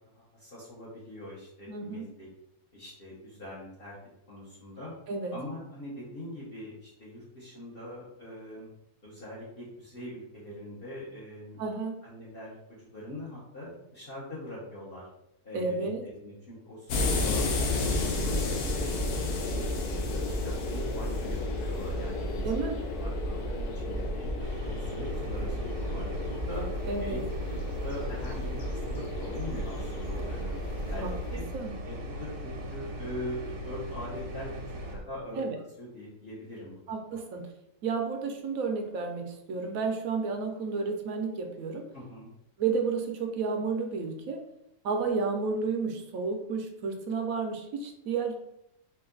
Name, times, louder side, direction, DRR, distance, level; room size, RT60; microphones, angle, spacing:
voice 1, 0.0-2.3 2.7-3.9 4.3-4.9 5.3-8.7 9.0-11.6 12.0-15.1 15.4-15.9 16.1-18.6 18.9-19.6 20.1-22.5 22.9-24.3 24.7-26.6 27.0-27.2 27.8-30.6 30.9-31.0 31.3-31.5 31.8-34.6 34.9-35.4 35.8-36.8 37.1-37.3 41.9-42.3, left 1 dB, 40° left, -7 dB, 1.2 m, -42 dB
voice 2, 1.7-2.1 5.1-5.3 11.6-12.0 15.5-16.0 22.4-22.8 26.8-27.2 31.0-31.1 31.5-31.7 35.4-35.6 36.9-37.5 37.8-41.8 42.6-44.4 44.8-48.4, right 4 dB, 70° right, 4 dB, 1.1 m, -31 dB
sound 1, 16.9-31.4, left 1 dB, 80° left, 1.2 m, -32 dB
sound 2, 24.4-35.0, equal, 90° right, 1.4 m, -39 dB
4.6 x 2.6 x 3.8 m, 0.80 s
omnidirectional pair, 1.7 m